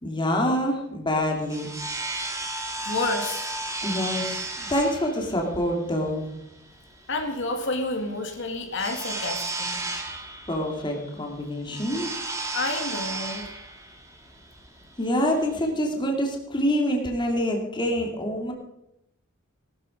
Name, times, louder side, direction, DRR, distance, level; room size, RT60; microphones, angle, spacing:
voice 1, 0.0-1.7 3.8-6.2 10.5-12.1 15.0-18.5, equal, 20° left, 1 dB, 2.6 m, -26 dB
sound 1, 1.1-15.7, right 2 dB, 15° right, 2.3 m, -34 dB
voice 2, 2.8-3.5 7.1-9.9 12.5-13.4, left 2 dB, 60° left, 4 dB, 2.2 m, -29 dB
19.0 x 12.5 x 5.3 m, 0.86 s
head